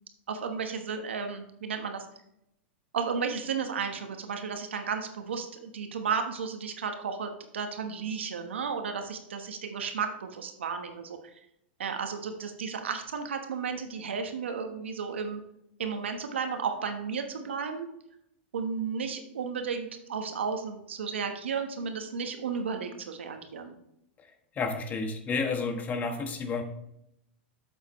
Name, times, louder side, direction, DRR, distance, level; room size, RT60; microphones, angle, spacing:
voice 1, 0.3-2.0 2.9-11.2 11.8-15.4 15.8-17.9 18.5-23.7, right 6 dB, 90° right, 5 dB, 1.2 m, -33 dB
voice 2, 24.5-26.6, left 4 dB, 25° left, 5 dB, 1.3 m, -31 dB
8.2 x 7.5 x 3.1 m, 0.79 s
hypercardioid pair, 115°, 6 cm